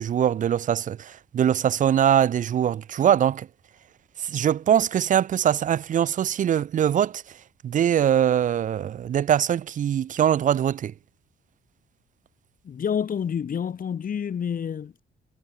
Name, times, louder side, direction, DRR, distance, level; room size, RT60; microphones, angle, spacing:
voice 1, 0.0-3.5 4.2-7.2 7.6-10.9, right 9 dB, 40° right, 0.4 m, -22 dB
voice 2, 12.6-15.0, left 7 dB, 45° left, 1.2 m, -28 dB
cardioid pair, 90°, 20 cm